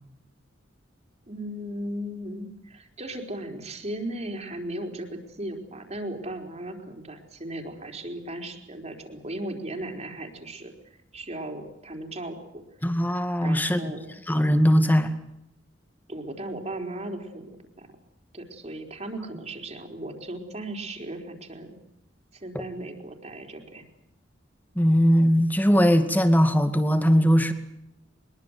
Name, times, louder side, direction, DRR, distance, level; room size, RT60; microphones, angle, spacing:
voice 1, 1.3-10.7 11.1-12.4 13.4-14.1 16.1-17.9 18.3-21.8 22.3-23.8, right 1 dB, 35° right, 3 dB, 4.2 m, -36 dB
voice 2, 12.8-13.9 14.3-15.1 22.5-22.6 24.8-27.5, equal, 10° left, 8 dB, 2.3 m, -20 dB
23.0 x 22.0 x 8.2 m, 0.82 s
head